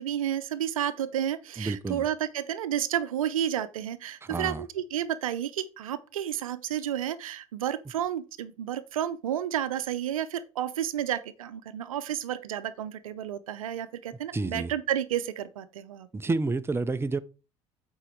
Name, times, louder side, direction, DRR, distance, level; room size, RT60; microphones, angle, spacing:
voice 1, 0.0-16.1, right 10 dB, 90° right, 0.6 m, -31 dB
voice 2, 1.6-2.1 4.2-4.6 14.3-14.7 16.1-17.2, right 3 dB, 15° right, 0.6 m, -29 dB
8.2 x 4.6 x 4.6 m
hypercardioid pair, 70°, 17 cm